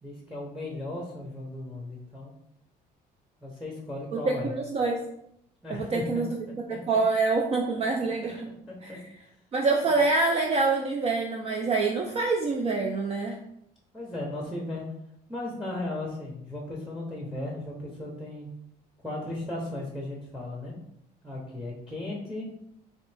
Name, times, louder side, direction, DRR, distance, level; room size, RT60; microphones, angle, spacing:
voice 1, 0.0-2.3 3.4-4.5 5.6-6.2 6.7-6.8 13.9-14.9 15.3-18.5 19.0-20.8 21.2-22.5, left 1 dB, 5° right, -2 dB, 0.8 m, -36 dB
voice 2, 4.1-5.0 5.7-6.4 6.7-8.5 8.8-9.0 9.5-13.4, right 3 dB, 35° right, 1 dB, 0.4 m, -26 dB
3.9 x 2.7 x 3.3 m, 0.76 s
cardioid pair, 110°, 17 cm